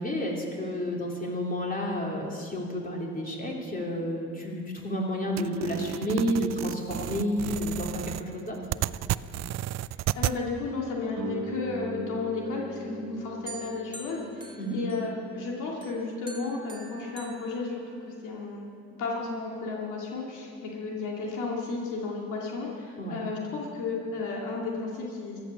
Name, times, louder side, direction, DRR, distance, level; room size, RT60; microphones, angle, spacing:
voice 1, 0.0-8.6 14.6-14.8 23.0-23.2, equal, 30° left, -1 dB, 3.4 m, -30 dB
sound 1, 5.4-10.4, right 14 dB, 60° right, 0.4 m, -32 dB
voice 2, 10.1-18.7 19.0-25.4, left 3 dB, 90° left, -2 dB, 2.4 m, -33 dB
Guitar, 11.1-16.5, right 2 dB, 75° right, 1.6 m, -42 dB
sound 2, 13.5-15.4 15.8-18.3, right 3 dB, 15° right, 1.9 m, -47 dB
15.5 x 11.5 x 7.2 m, 2.3 s
cardioid pair, 90°, 30 cm